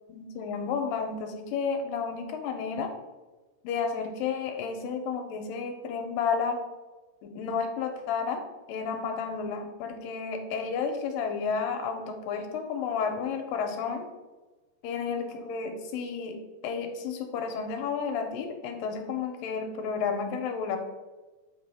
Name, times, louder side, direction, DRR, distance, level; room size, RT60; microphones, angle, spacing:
voice 1, 0.1-2.9 3.6-6.6 7.2-8.4 8.7-14.1 14.8-16.4 16.6-20.8, left 5 dB, 75° left, 4 dB, 2.2 m, -31 dB
7.4 x 4.7 x 3.4 m, 1.2 s
omnidirectional pair, 4.3 m